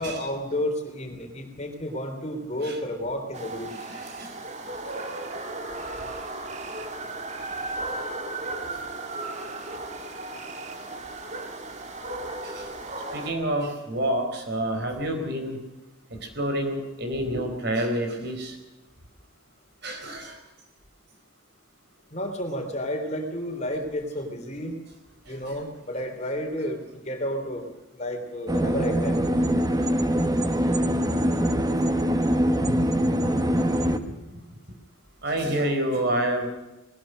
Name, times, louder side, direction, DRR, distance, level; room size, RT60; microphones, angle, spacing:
voice 1, 0.0-3.9 22.1-24.8 25.3-27.7 27.9-29.2, equal, 35° left, 4 dB, 3.4 m, -31 dB
sound 1, 3.3-13.3, right 2 dB, 35° right, 2.2 m, -35 dB
voice 2, 3.9-4.3 12.4-12.7 13.1-15.6 16.4-18.6 19.8-20.3 25.4-25.5 32.6-32.8 33.9-34.0 34.3-34.4 35.2-36.5, right 1 dB, 55° right, 5 dB, 4.3 m, -28 dB
sound 2, 28.5-34.0, equal, 20° right, 1.3 m, -23 dB
20.5 x 19.5 x 6.5 m, 1.0 s
head